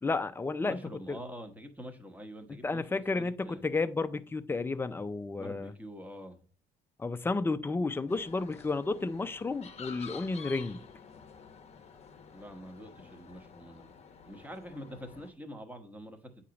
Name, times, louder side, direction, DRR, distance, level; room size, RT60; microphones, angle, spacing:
voice 1, 0.0-0.8 1.1-1.2 2.5-5.7 7.0-10.8, left 3 dB, 15° left, 0.4 m, -32 dB
voice 2, 0.6-3.6 5.4-6.4 12.3-14.0 14.2-16.5, equal, 10° right, 1.0 m, -46 dB
sound 1, 8.1-15.3, left 6 dB, 40° left, 0.8 m, -50 dB
8.2 x 2.9 x 5.1 m
cardioid pair, 110°, 17 cm